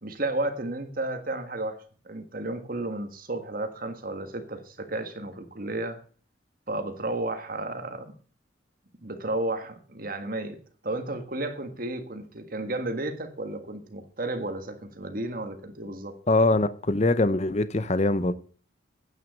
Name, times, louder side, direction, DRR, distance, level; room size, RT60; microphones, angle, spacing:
voice 1, 0.0-6.0 6.7-8.1 9.0-10.6 10.8-16.2, right 2 dB, 45° right, 1.6 m, -33 dB
voice 2, 16.3-18.3, left 2 dB, 35° left, 0.6 m, -23 dB
9.3 x 9.2 x 6.5 m
head